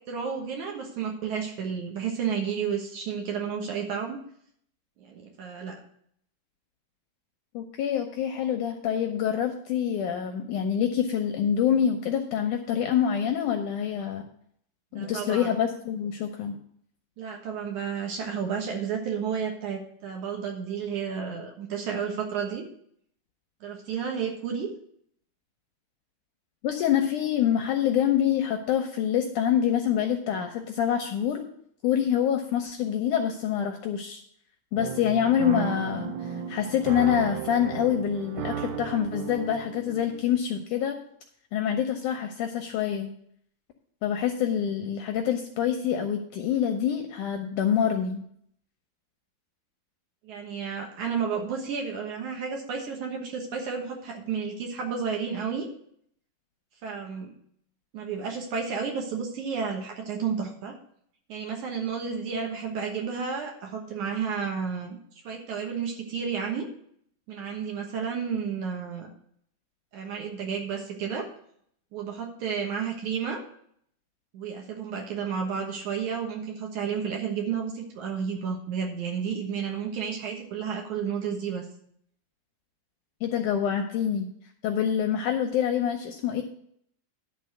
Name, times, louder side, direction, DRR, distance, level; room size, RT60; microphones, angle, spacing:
voice 1, 0.1-4.2 5.0-5.8 15.0-15.6 17.2-22.6 23.6-24.7 50.2-55.7 56.8-57.3 57.9-60.8 61.3-65.0 65.2-66.7 67.3-69.1 69.9-71.3 71.9-73.4 74.3-81.7, right 6 dB, 65° right, 1 dB, 2.4 m, -31 dB
voice 2, 7.5-14.2 14.9-16.5 26.6-31.5 31.8-34.2 34.7-41.0 41.5-43.1 44.0-48.2 83.2-84.3 84.6-86.4, left 9 dB, 75° left, 5 dB, 1.9 m, -26 dB
sound 1, 34.8-40.4, right 7 dB, 80° right, 2.6 m, -34 dB
11.5 x 4.0 x 7.7 m, 0.65 s
omnidirectional pair, 4.3 m